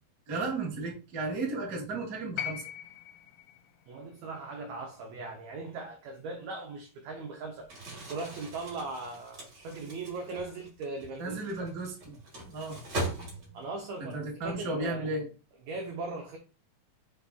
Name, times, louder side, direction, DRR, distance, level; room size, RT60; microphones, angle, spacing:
voice 1, 0.3-2.6 11.2-12.2 12.4-12.8 14.0-15.3, right 3 dB, 65° right, 0.8 m, -34 dB
sound 1, 2.4-6.5 7.7-7.8, left 11 dB, 85° left, 2.4 m, -42 dB
voice 2, 3.9-7.7 8.1-11.4 13.5-15.0 15.6-16.4, right 3 dB, 85° right, 1.6 m, -39 dB
Crumpling crinkling, 7.6-13.8, right 1 dB, 45° right, 1.5 m, -40 dB
5.5 x 2.6 x 3.5 m
omnidirectional pair, 4.1 m